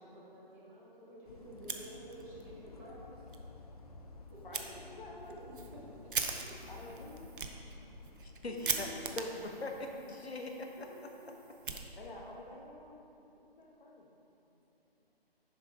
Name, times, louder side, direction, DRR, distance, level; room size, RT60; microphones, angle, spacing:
voice 1, 0.0-3.1 4.3-4.4 5.7-6.0 6.4-6.5 8.4-9.0 10.8-11.0, right 1 dB, 10° right, -7 dB, 0.8 m, -51 dB
sound 1, 1.3-9.1, left 3 dB, 40° left, 0.4 m, -52 dB
Fire, 1.5-2.5 2.8-2.9 3.3-3.4 4.5-4.7 5.2-12.4, right 5 dB, 55° right, 0.6 m, -41 dB
voice 2, 4.4-5.5 6.7-7.3 7.9-8.1 11.9-14.1 14.4-14.5, left 1 dB, 55° left, -2 dB, 1.3 m, -50 dB
voice 3, 8.2-8.9 9.2-11.1, left 2 dB, 85° left, 2 dB, 1.1 m, -41 dB
7.0 x 4.9 x 4.8 m, 2.8 s
figure-of-eight pair, 150°, 31 cm